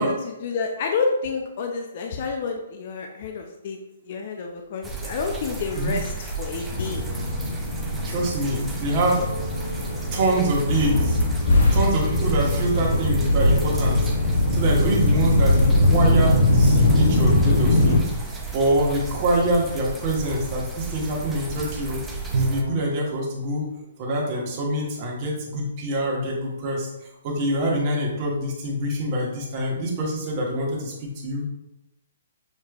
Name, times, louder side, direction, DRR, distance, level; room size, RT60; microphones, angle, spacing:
voice 1, 0.0-3.8 4.0-7.1, left 4 dB, 45° left, 3 dB, 0.4 m, -29 dB
sound 1, 4.8-22.6, right 3 dB, 5° right, 0.5 m, -34 dB
sound 2, 6.7-18.0, left 1 dB, 70° left, 1.0 m, -21 dB
voice 2, 8.0-9.3 10.1-11.2 11.7-14.1 14.5-18.0 18.5-22.0 22.3-23.7 24.0-26.9 27.2-31.4, right 1 dB, 30° right, -3 dB, 1.2 m, -25 dB
Bowed string instrument, 22.3-23.2, right 4 dB, 55° right, 0.5 m, -26 dB
6.4 x 3.1 x 2.4 m, 0.90 s
hypercardioid pair, 155°, 0 cm